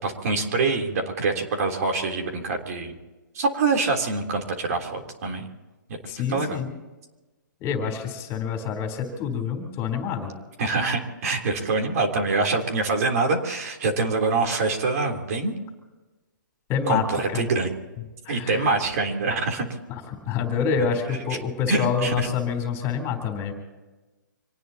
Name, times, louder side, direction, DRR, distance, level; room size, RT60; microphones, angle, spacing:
voice 1, 0.0-3.0 3.3-5.5 6.0-6.6 10.6-15.5 16.9-17.7 18.3-19.7 21.7-22.3, right 3 dB, 50° right, 3 dB, 3.4 m, -25 dB
voice 2, 6.1-6.7 7.6-10.3 16.7-17.0 17.3-17.5 18.2-18.7 19.9-23.5, left 6 dB, 25° left, 5 dB, 3.7 m, -27 dB
26.5 x 19.0 x 2.9 m, 1.2 s
hypercardioid pair, 145°, 11 cm